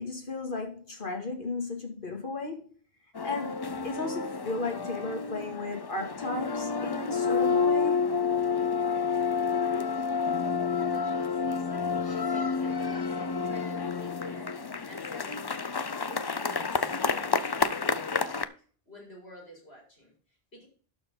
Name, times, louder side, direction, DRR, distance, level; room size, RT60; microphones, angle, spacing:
voice 1, 0.0-2.7 3.2-8.0, left 3 dB, 55° left, 2.4 m, -35 dB
sound 1, 3.2-18.4, left 5 dB, 35° left, 0.4 m, -29 dB
voice 2, 10.7-14.5 14.8-15.5 16.0-18.5 18.8-20.1 20.5-20.7, equal, 80° left, 6.1 m, -50 dB
12.0 x 4.6 x 5.5 m
omnidirectional pair, 1.0 m